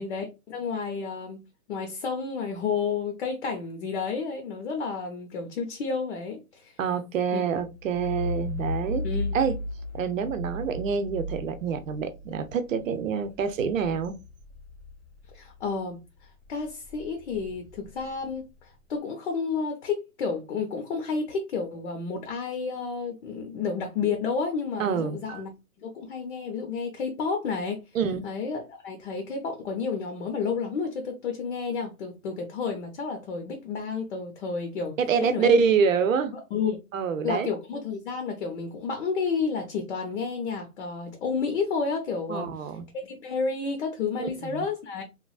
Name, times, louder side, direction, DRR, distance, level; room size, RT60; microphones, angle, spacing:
voice 1, 0.0-6.8 7.3-7.4 9.0-9.3 15.3-16.0 16.5-25.5 25.8-27.8 28.2-35.5 36.5-36.8 37.2-42.7 43.0-45.0, left 5 dB, 50° left, 0.7 m, -31 dB
voice 2, 6.8-9.0 9.3-9.5 9.9-14.2 24.8-25.4 27.9-28.2 35.0-36.4 36.9-37.5 42.3-42.8 44.2-44.7, right 6 dB, 60° right, 0.6 m, -26 dB
sound 1, 7.5-15.8 16.2-18.8, left 2 dB, 15° left, 0.5 m, -36 dB
3.1 x 2.4 x 2.3 m
hypercardioid pair, 155°, 44 cm